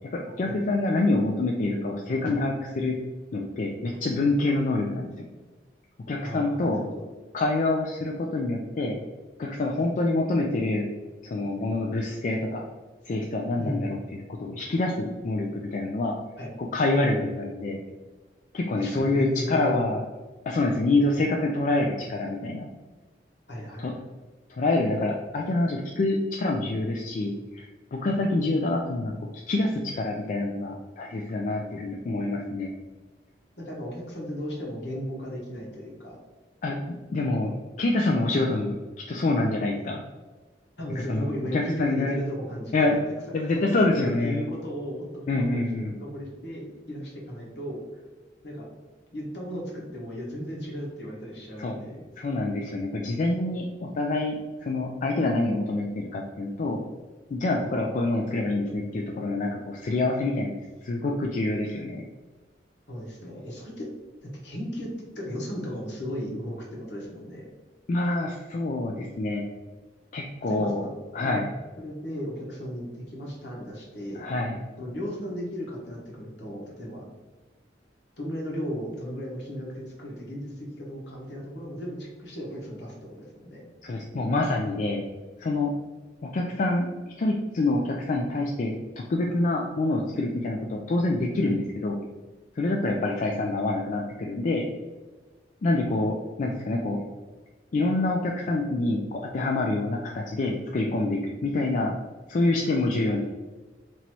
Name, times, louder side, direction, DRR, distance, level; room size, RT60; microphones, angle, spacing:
voice 1, 0.1-2.9 3.3-5.3 6.1-6.8 7.3-9.0 9.4-10.9 11.2-12.6 13.1-16.1 16.6-17.8 18.5-20.0 20.5-22.7 23.8-23.9 24.6-29.1 29.5-32.7 36.6-36.8 37.1-37.5 37.8-38.8 39.1-40.0 41.1-42.1 42.7-43.0 43.3-44.4 45.3-46.0 51.6-51.8 52.2-56.8 57.3-60.5 60.8-62.0 67.9-69.4 70.1-70.8 71.1-71.5 74.2-74.6 83.8-85.0 85.4-85.7 86.3-86.9 87.2-92.0 92.6-94.7 95.6-97.0 97.7-102.0 102.3-103.2, left 2 dB, 45° left, 0 dB, 0.3 m, -26 dB
voice 2, 6.2-7.0 9.8-9.9 13.6-13.9 16.4-16.5 18.7-19.9 23.5-24.0 28.0-28.1 33.6-36.2 40.8-48.0 48.4-48.7 49.1-52.1 62.9-63.9 64.2-67.5 70.4-70.7 71.2-71.4 71.8-74.3 74.8-77.0 78.2-83.6, equal, 70° left, -2 dB, 1.2 m, -35 dB
3.0 x 2.7 x 4.4 m, 1.3 s
head